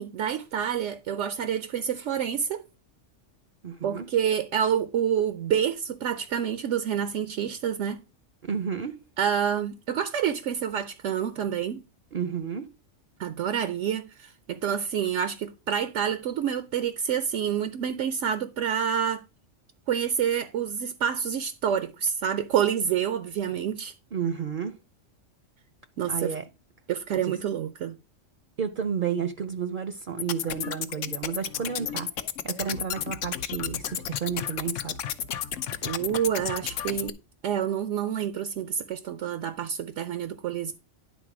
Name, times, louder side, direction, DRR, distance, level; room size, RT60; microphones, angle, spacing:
voice 1, 0.0-2.6 3.8-8.0 9.2-11.8 13.2-19.2 19.9-23.9 26.0-26.4 26.9-28.0 35.8-37.1 37.4-40.7, right 8 dB, 75° right, 1.0 m, -28 dB
voice 2, 3.6-4.1 8.4-9.0 12.1-12.7 24.1-24.8 26.1-26.4 27.2-27.3 28.6-32.1 32.4-34.9, right 7 dB, 50° right, 0.8 m, -31 dB
sound 1, 30.2-37.1, left 9 dB, 80° left, 1.0 m, -33 dB
10.5 x 3.8 x 6.0 m
omnidirectional pair, 1.3 m